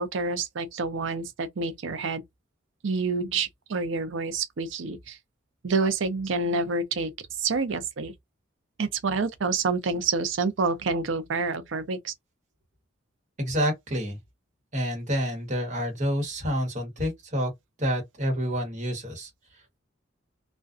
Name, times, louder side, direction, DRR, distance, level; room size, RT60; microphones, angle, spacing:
voice 1, 0.0-2.2 2.8-5.2 5.6-7.1 7.4-8.1 8.8-12.1, right 4 dB, 65° right, 0.5 m, -28 dB
voice 2, 13.4-14.2 14.7-17.5 17.8-19.3, equal, 35° right, 1.1 m, -28 dB
2.4 x 2.2 x 2.4 m
head